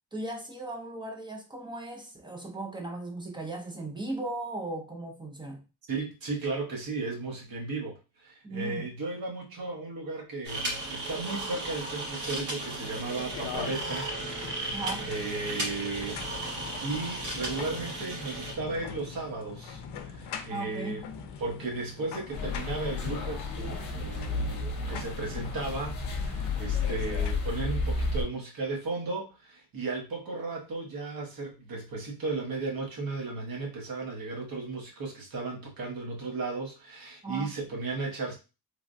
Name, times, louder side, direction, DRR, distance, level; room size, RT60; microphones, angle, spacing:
voice 1, 0.1-5.6 8.4-8.9 14.7-15.1 20.5-21.0 37.2-37.6, right 2 dB, 10° right, 0.5 m, -37 dB
voice 2, 5.9-14.1 15.1-19.8 20.1-21.0 21.4-38.3, right 3 dB, 60° right, 1.1 m, -35 dB
sound 1, 10.4-18.5, right 2 dB, 85° right, 1.3 m, -35 dB
sound 2, 13.3-27.3, left 6 dB, 85° left, 0.5 m, -43 dB
sound 3, 22.3-28.2, left 3 dB, 50° left, 0.8 m, -32 dB
3.3 x 2.1 x 2.5 m
wide cardioid pair, 155°, 40 cm